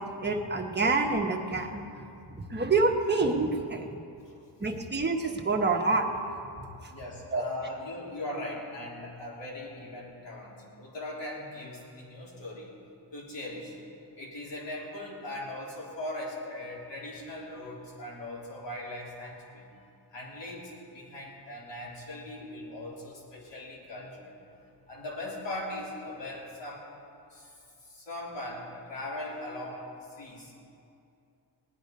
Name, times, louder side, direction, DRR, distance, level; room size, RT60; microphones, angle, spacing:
voice 1, 0.0-1.8 2.4-3.9 4.6-6.0 7.3-7.4, right 3 dB, 25° right, 2 dB, 1.2 m, -27 dB
voice 2, 4.1-4.4 6.9-12.8 13.1-13.8 14.2-19.6 20.1-24.3 24.9-26.9 27.3-27.5 27.8-30.6, left 1 dB, 80° left, -4 dB, 3.5 m, -40 dB
19.0 x 9.9 x 5.3 m, 2.6 s
wide cardioid pair, 125°, 43 cm